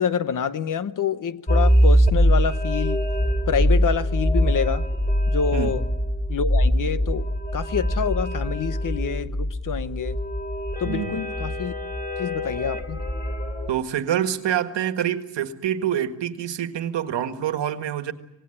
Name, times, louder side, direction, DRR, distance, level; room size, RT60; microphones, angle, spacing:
voice 1, 0.0-3.0 3.5-4.8 5.3-5.8 6.3-10.2 10.8-11.7 12.2-13.0, left 7 dB, 45° left, 13 dB, 0.9 m, -27 dB
sound 1, 1.5-13.7, equal, 20° left, 3.1 m, -23 dB
voice 2, 10.8-11.3 13.7-18.1, right 10 dB, 70° right, 8 dB, 1.8 m, -26 dB
26.0 x 18.5 x 9.9 m, 0.88 s
wide cardioid pair, 175°, 45 cm